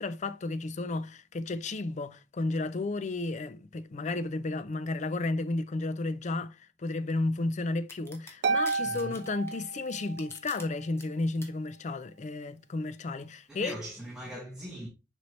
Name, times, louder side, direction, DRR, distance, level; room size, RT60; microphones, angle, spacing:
voice 1, 0.0-13.8, left 2 dB, 40° left, 0.5 m, -33 dB
sound 1, 7.9-10.6 11.0-11.5, left 2 dB, 15° left, 1.2 m, -46 dB
Harp, 8.4-10.3, right 4 dB, 70° right, 0.5 m, -31 dB
voice 2, 8.8-9.2 13.5-14.9, equal, 5° right, 1.6 m, -40 dB
6.9 x 4.5 x 3.1 m
head